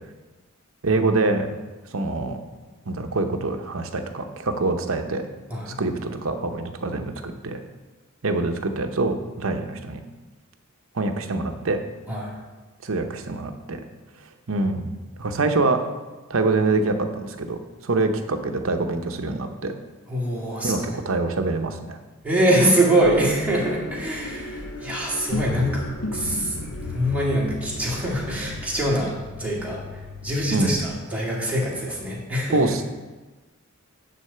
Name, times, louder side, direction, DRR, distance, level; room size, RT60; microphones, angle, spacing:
voice 1, 0.8-1.5 1.9-2.4 2.9-5.2 5.7-7.6 8.2-10.0 10.9-11.8 12.8-13.8 14.5-14.9 15.2-15.8 16.3-17.6 17.8-19.7 20.6-22.0 30.5-30.8 32.5-32.8, right 3 dB, 70° right, 6 dB, 0.8 m, -25 dB
voice 2, 20.1-20.9 22.2-32.8, right 1 dB, 5° right, -5 dB, 2.1 m, -24 dB
sound 1, 23.0-30.8, left 2 dB, 75° left, 0.8 m, -34 dB
9.6 x 4.1 x 6.7 m, 1.2 s
head